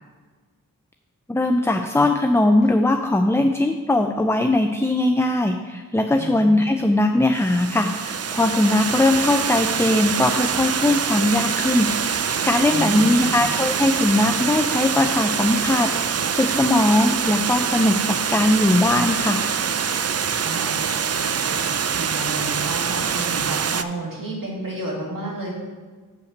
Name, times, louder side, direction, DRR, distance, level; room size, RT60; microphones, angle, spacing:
voice 1, 1.3-19.4, left 1 dB, 10° left, 5 dB, 0.4 m, -20 dB
voice 2, 6.2-6.6 12.7-13.4 20.4-25.5, right 2 dB, 75° right, -3 dB, 2.2 m, -32 dB
Water, 7.3-23.8, right 7 dB, 45° right, 0.4 m, -24 dB
6.6 x 5.5 x 6.6 m, 1.4 s
wide cardioid pair, 55°, 34 cm